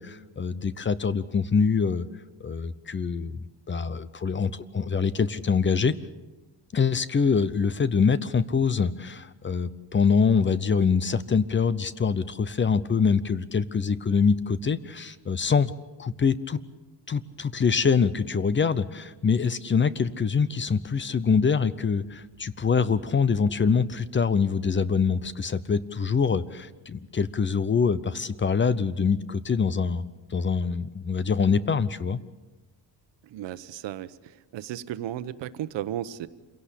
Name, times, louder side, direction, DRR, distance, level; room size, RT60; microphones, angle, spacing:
voice 1, 0.0-2.1 2.4-5.9 6.7-15.7 16.0-16.6 17.1-30.0 30.3-32.2, left 5 dB, 25° left, 17 dB, 0.7 m, -24 dB
voice 2, 33.3-34.1 34.5-36.3, right 12 dB, 80° right, 14 dB, 1.1 m, -34 dB
27.0 x 17.0 x 8.4 m, 1.2 s
cardioid pair, 140°, 43 cm